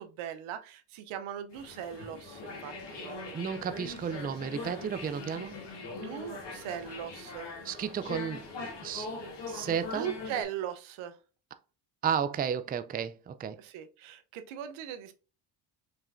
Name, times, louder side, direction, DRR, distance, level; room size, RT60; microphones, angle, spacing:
voice 1, 0.0-3.4 5.9-7.6 9.9-11.2 13.6-15.1, right 9 dB, 85° right, 0.8 m, -39 dB
sound 1, 1.5-10.4, left 3 dB, 60° left, 1.9 m, -42 dB
voice 2, 3.3-5.6 7.6-9.1 9.5-10.1 12.0-13.6, right 7 dB, 20° right, 0.4 m, -33 dB
5.0 x 3.3 x 2.5 m
cardioid pair, 80°, 48 cm